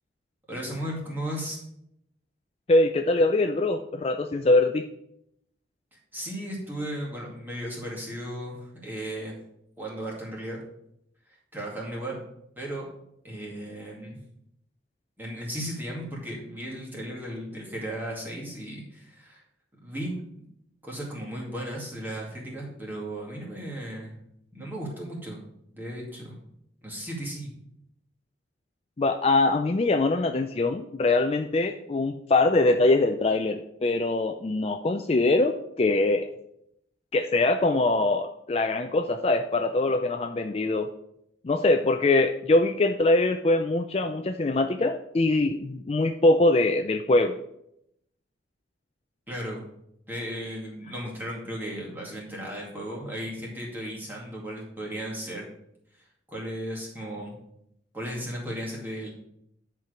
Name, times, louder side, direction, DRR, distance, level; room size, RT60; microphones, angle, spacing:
voice 1, 0.5-1.6 5.9-9.4 9.8-10.6 11.3-12.2 12.6-12.9 13.2-14.2 15.2-19.4 19.8-20.5 20.8-24.2 24.5-25.4 25.7-26.4 26.8-27.6 49.3-49.6 50.1-55.5 55.9-57.4 57.9-59.1, equal, 10° right, -4 dB, 2.2 m, -35 dB
voice 2, 2.7-4.9 29.0-36.3 37.1-40.9 41.4-47.4, left 2 dB, 30° left, 6 dB, 0.4 m, -23 dB
10.5 x 4.5 x 5.0 m, 0.77 s
head